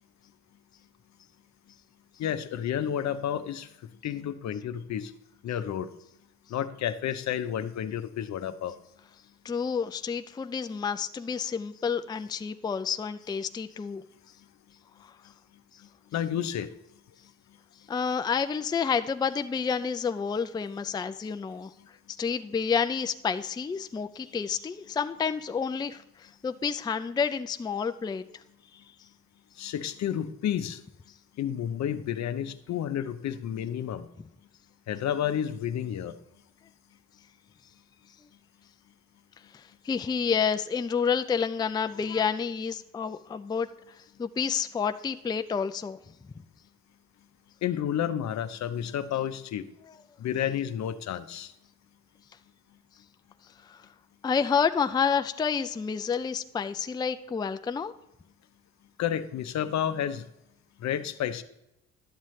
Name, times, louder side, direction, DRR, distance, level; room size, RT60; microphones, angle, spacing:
voice 1, 2.2-3.7 4.0-5.1 5.4-5.9 6.5-8.7 16.1-16.7 29.6-30.8 31.4-34.1 34.9-36.1 47.6-49.7 50.2-51.5 59.0-60.2 60.8-61.4, left 10 dB, 65° left, 11 dB, 0.7 m, -31 dB
voice 2, 9.4-14.0 15.0-15.1 17.9-21.7 22.2-28.2 39.5-43.7 44.2-46.0 53.6-53.9 54.2-57.9, left 6 dB, 15° left, 9 dB, 0.4 m, -29 dB
11.5 x 7.3 x 3.2 m, 0.85 s
cardioid pair, 90°, 30 cm